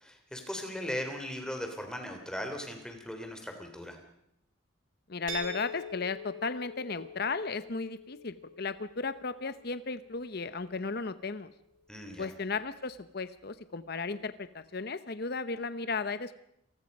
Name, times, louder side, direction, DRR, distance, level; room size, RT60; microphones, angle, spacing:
voice 1, 0.0-4.0 11.9-12.3, equal, 5° left, 4 dB, 3.2 m, -38 dB
voice 2, 5.1-11.5 12.2-16.4, left 4 dB, 50° left, 13 dB, 0.8 m, -35 dB
sound 1, 5.3-11.0, left 1 dB, 70° right, 3.4 m, -45 dB
27.0 x 19.5 x 5.4 m, 0.79 s
head